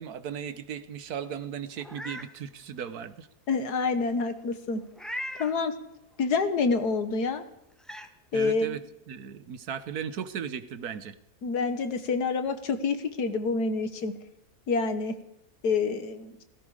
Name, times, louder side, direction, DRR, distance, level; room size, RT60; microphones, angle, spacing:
voice 1, 0.0-3.3 8.3-8.8 9.1-11.2, right 8 dB, 75° right, 13 dB, 1.5 m, -36 dB
Meow, 1.8-2.3 2.8-2.9 4.9-5.6 7.1-7.2 7.8-8.1, left 1 dB, ahead, 1.1 m, -38 dB
voice 2, 3.5-4.8 5.4-5.7 6.2-7.4 8.3-8.8 11.4-14.1 14.7-15.1 15.6-16.3, left 4 dB, 85° left, 9 dB, 2.0 m, -27 dB
17.0 x 16.0 x 5.0 m, 0.82 s
omnidirectional pair, 1.6 m